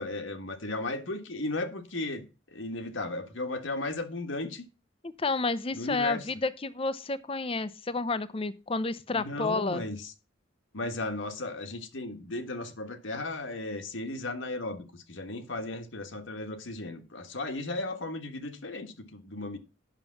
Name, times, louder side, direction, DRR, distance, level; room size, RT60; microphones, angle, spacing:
voice 1, 0.0-2.2 2.5-4.6 5.7-6.3 9.1-10.1 10.7-19.6, left 2 dB, 75° left, 1.6 m, -35 dB
voice 2, 5.0-9.8, left 3 dB, 30° left, 0.6 m, -30 dB
9.2 x 6.6 x 5.8 m
head